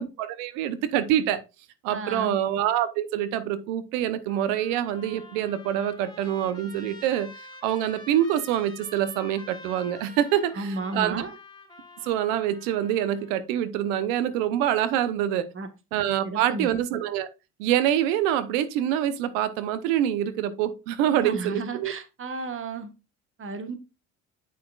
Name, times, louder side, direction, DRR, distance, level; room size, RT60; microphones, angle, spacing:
voice 1, 0.0-1.4 1.8-7.3 7.6-11.2 12.0-15.5 15.9-17.3 17.6-21.9, right 11 dB, 85° right, 0.9 m, -25 dB
voice 2, 1.9-2.4 10.6-11.4 15.5-15.7 16.2-16.7 21.1-22.9 23.4-23.8, right 3 dB, 35° right, 1.3 m, -33 dB
Trumpet, 4.3-13.4, left 2 dB, 10° left, 2.8 m, -47 dB
8.5 x 6.0 x 2.3 m
supercardioid pair, 75°, 38 cm